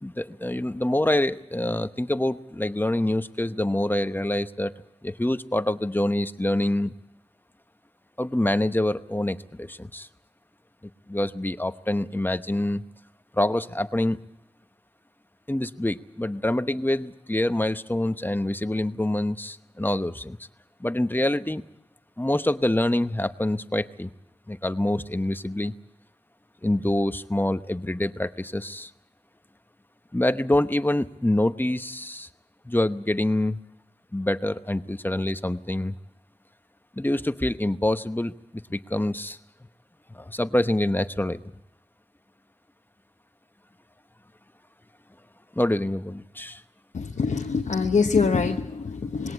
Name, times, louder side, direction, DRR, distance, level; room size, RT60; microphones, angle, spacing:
voice 1, 0.0-4.7 5.0-6.9 8.2-10.1 11.1-12.8 13.3-14.2 15.5-20.4 20.8-21.6 22.2-24.1 24.5-25.7 26.6-28.9 30.1-32.3 32.6-33.6 34.1-35.9 37.0-38.3 38.7-39.4 40.1-41.4 45.5-46.6, left 1 dB, 15° left, 11 dB, 0.9 m, -26 dB
voice 2, 46.9-49.3, left 5 dB, 85° left, 2 dB, 1.0 m, -24 dB
20.5 x 18.0 x 8.4 m, 0.84 s
cardioid pair, 40°, 12 cm